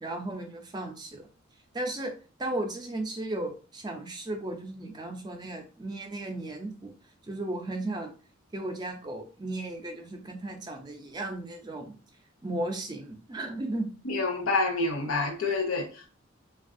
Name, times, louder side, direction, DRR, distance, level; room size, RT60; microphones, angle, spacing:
voice 1, 0.0-1.3 1.7-2.1 2.4-6.9 7.2-8.1 8.5-11.9 12.4-13.9, right 2 dB, 20° right, 0.4 m, -35 dB
voice 2, 14.0-16.1, left 3 dB, 80° left, 0.7 m, -28 dB
3.4 x 2.3 x 2.5 m
head